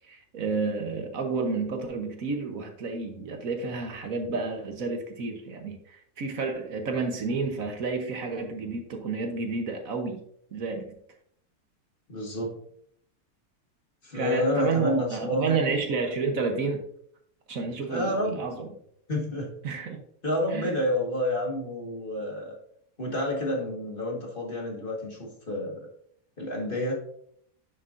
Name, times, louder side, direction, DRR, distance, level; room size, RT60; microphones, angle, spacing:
voice 1, 0.0-10.2 10.5-11.0 14.1-16.8 17.5-18.7 19.6-20.0 20.5-20.7, right 4 dB, 65° right, 5 dB, 1.4 m, -30 dB
voice 2, 12.1-12.6 14.0-15.6 17.9-18.4 19.1-19.5 20.2-22.6 23.0-25.9 26.4-26.9, left 1 dB, 35° left, -1 dB, 1.9 m, -29 dB
10.0 x 6.8 x 2.6 m, 0.66 s
omnidirectional pair, 1.6 m